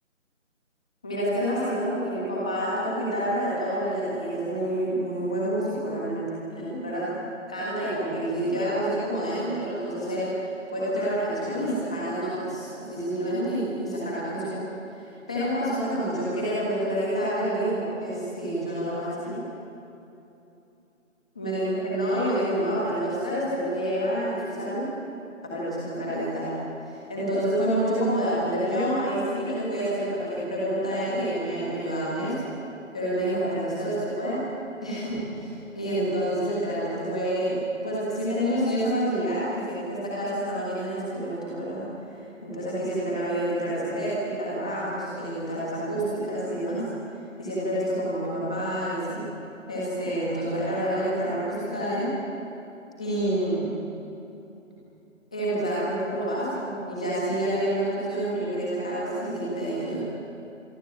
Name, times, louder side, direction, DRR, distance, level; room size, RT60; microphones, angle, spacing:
voice 1, 1.0-6.2 6.5-7.1 7.5-10.3 10.7-14.6 15.3-19.4 21.3-24.9 25.4-26.5 26.9-32.3 32.9-34.4 34.8-37.6 37.8-41.8 42.4-46.8 47.4-49.2 49.7-52.1 53.0-53.7 55.3-60.0, right 1 dB, 5° left, -7 dB, 1.6 m, -28 dB
25.5 x 22.0 x 8.7 m, 2.8 s
figure-of-eight pair, 180°, 40 cm